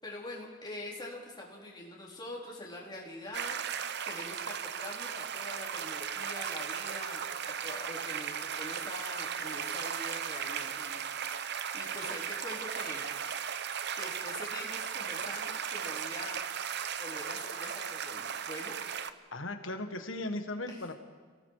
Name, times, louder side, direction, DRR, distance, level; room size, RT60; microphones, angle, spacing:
voice 1, 0.0-3.8 4.0-13.0 13.9-16.4 17.0-18.8 20.7-20.8, left 1 dB, 20° left, -3 dB, 4.2 m, -44 dB
sound 1, 3.3-19.1, right 8 dB, 60° right, 0.8 m, -36 dB
voice 2, 19.3-20.9, left 2 dB, 70° left, 7 dB, 1.7 m, -37 dB
28.5 x 18.5 x 4.9 m, 1.5 s
head